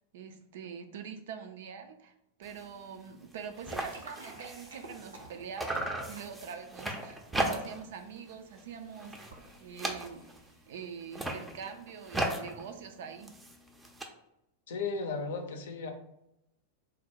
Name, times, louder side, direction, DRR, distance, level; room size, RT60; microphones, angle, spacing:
voice 1, 0.1-2.1 2.4-9.3 9.6-10.3 10.7-13.4, right 7 dB, 55° right, 6 dB, 0.4 m, -44 dB
sound 1, 2.4-2.7 3.0-3.1 3.3-5.3 5.6-7.9 8.3-8.6 8.9-10.5 11.0-14.0, right 1 dB, 10° right, 0.5 m, -37 dB
sound 2, 3.6-10.9, right 2 dB, 70° right, 0.8 m, -54 dB
voice 2, 14.7-15.9, left 4 dB, 60° left, 6 dB, 0.5 m, -35 dB
3.8 x 2.2 x 4.3 m, 0.83 s
figure-of-eight pair, 90°, 0 cm